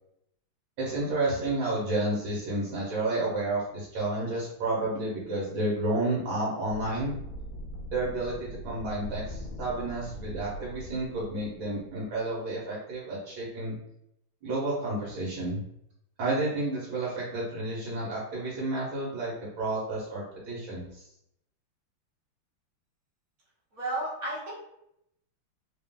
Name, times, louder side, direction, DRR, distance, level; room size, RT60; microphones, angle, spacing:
voice 1, 0.8-7.1 7.9-13.8 14.4-15.6 16.2-21.1, right 2 dB, 65° right, -6 dB, 1.8 m, -31 dB
sound 1, 6.7-12.0, equal, 75° left, 1.3 m, -41 dB
voice 2, 23.7-24.5, right 2 dB, 45° right, -5 dB, 1.5 m, -32 dB
3.8 x 2.5 x 3.5 m, 0.77 s
omnidirectional pair, 2.4 m